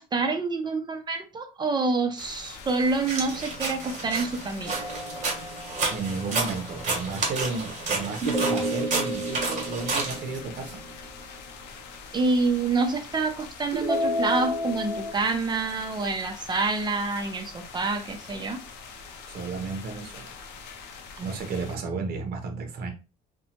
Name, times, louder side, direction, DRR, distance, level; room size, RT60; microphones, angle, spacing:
voice 1, 0.0-4.8 12.1-18.6 21.2-21.3, right 3 dB, 25° right, 0.6 m, -27 dB
sound 1, 2.2-21.8, left 5 dB, 85° left, 0.6 m, -44 dB
sound 2, 3.1-10.7, right 3 dB, 50° right, 1.2 m, -31 dB
sound 3, 4.7-6.2 8.2-11.4 13.7-15.1, equal, 5° right, 1.2 m, -31 dB
voice 2, 5.9-10.7 19.3-20.3 21.2-22.9, right 4 dB, 65° right, 0.8 m, -33 dB
2.7 x 2.2 x 2.8 m
cardioid pair, 110°, 17 cm